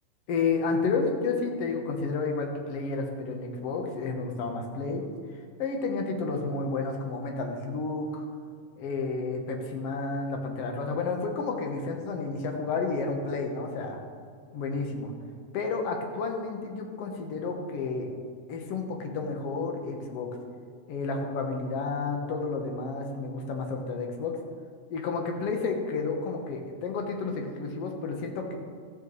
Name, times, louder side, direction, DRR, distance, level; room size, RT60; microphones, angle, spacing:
voice 1, 0.3-5.0 5.6-8.3 8.8-14.0 14.5-15.1 15.5-18.1 18.5-20.3 20.9-24.4 24.9-28.6, left 4 dB, 60° left, 2 dB, 2.0 m, -31 dB
13.5 x 9.4 x 3.2 m, 2.3 s
omnidirectional pair, 3.4 m